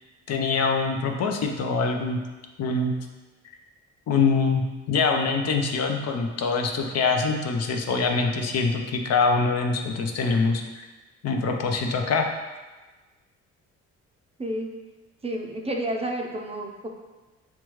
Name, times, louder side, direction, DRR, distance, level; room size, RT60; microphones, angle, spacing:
voice 1, 0.3-2.2 2.6-3.0 4.1-10.6 11.2-12.3, left 4 dB, 60° left, 3 dB, 0.6 m, -24 dB
voice 2, 15.2-16.9, right 1 dB, 20° right, 2 dB, 0.4 m, -30 dB
5.9 x 2.3 x 3.0 m, 1.2 s
cardioid pair, 90°, 30 cm